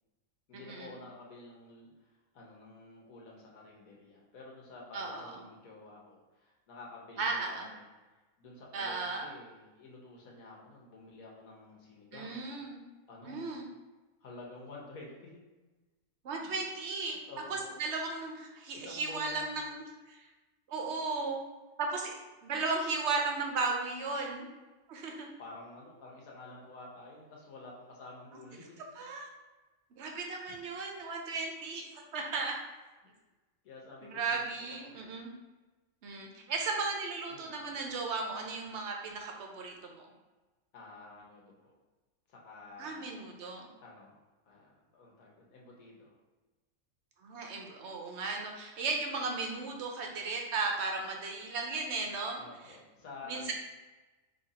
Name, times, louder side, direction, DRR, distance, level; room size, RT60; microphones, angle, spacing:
voice 1, 0.5-7.8 8.4-12.4 13.1-13.6 14.2-15.4 17.3-17.8 18.7-19.6 25.4-28.8 30.5-30.6 33.0-33.1 33.6-35.0 37.3-37.7 40.7-41.7 42.3-44.2 44.5-46.2 52.4-53.5, left 3 dB, 85° left, -2 dB, 1.4 m, -50 dB
voice 2, 4.9-5.3 7.2-7.7 8.7-9.3 12.1-12.8 13.2-13.6 16.2-17.2 17.5-19.8 20.1-20.3 20.7-21.4 21.8-24.5 24.9-25.3 29.0-29.3 30.0-32.6 34.1-35.3 36.0-40.1 42.8-43.7 47.2-52.4 53.2-53.5, right 3 dB, 60° right, 1 dB, 1.0 m, -35 dB
4.0 x 3.0 x 4.1 m, 1.2 s
omnidirectional pair, 1.4 m